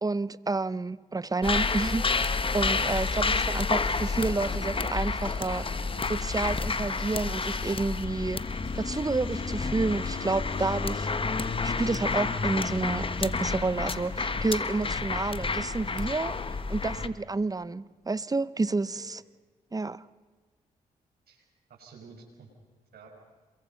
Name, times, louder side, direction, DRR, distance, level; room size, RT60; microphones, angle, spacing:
voice 1, 0.0-11.1 11.4-16.3 16.7-19.2 19.7-20.0, right 3 dB, 20° right, 0.9 m, -30 dB
sound 1, 1.4-17.1, left 4 dB, 35° left, 1.3 m, -30 dB
sound 2, 2.0-16.6, left 6 dB, 85° left, 2.2 m, -50 dB
voice 2, 16.8-17.1 19.0-19.1 21.3-21.4 21.7-22.5 22.9-23.1, right 4 dB, 70° right, 5.5 m, -50 dB
28.0 x 22.5 x 5.4 m
supercardioid pair, 60°, 16 cm